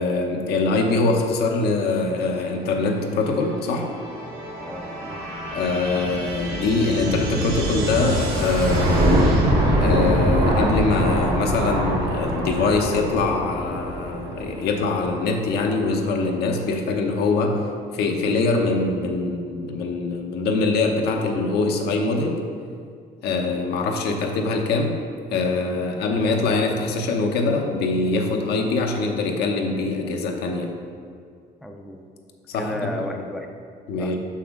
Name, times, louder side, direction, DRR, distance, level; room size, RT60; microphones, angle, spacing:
voice 1, 0.0-3.9 5.5-9.0 9.8-17.7 17.9-22.4 23.2-25.0 25.3-30.7 32.5-33.2 33.9-34.2, left 3 dB, 75° left, 2 dB, 0.8 m, -23 dB
sound 1, 2.5-16.0, right 1 dB, 75° right, 1.6 m, -24 dB
voice 2, 4.6-5.2 31.6-32.0 32.5-33.5 34.0-34.1, left 1 dB, ahead, 2 dB, 0.5 m, -33 dB
6.0 x 5.6 x 3.6 m, 2.2 s
cardioid pair, 110°, 17 cm